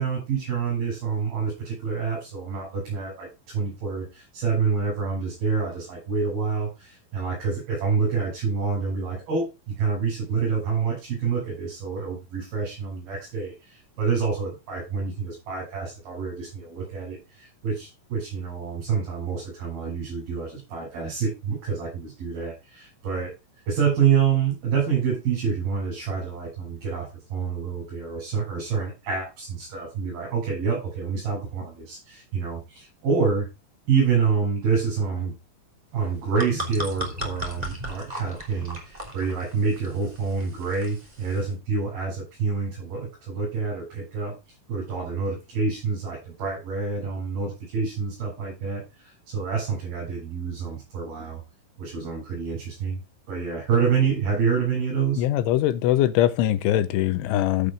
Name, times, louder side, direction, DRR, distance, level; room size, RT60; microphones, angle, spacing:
voice 1, 0.0-23.3 23.7-33.5 33.9-35.3 35.9-44.4 44.7-51.4 51.8-53.0 53.3-55.2, right 6 dB, 50° right, 9.3 m, -27 dB
sound 1, 36.0-41.5, equal, 10° right, 1.8 m, -36 dB
voice 2, 55.2-57.7, left 13 dB, 80° left, 3.1 m, -22 dB
15.0 x 8.3 x 2.6 m
omnidirectional pair, 5.9 m